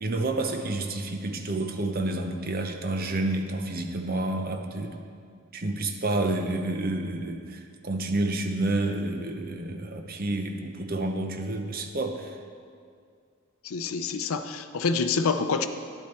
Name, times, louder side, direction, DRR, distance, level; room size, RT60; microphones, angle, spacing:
voice 1, 0.0-5.0 5.5-12.4, right 2 dB, 40° right, 5 dB, 0.7 m, -29 dB
voice 2, 13.6-15.7, left 4 dB, 70° left, 8 dB, 0.5 m, -27 dB
10.5 x 8.5 x 4.4 m, 2.2 s
head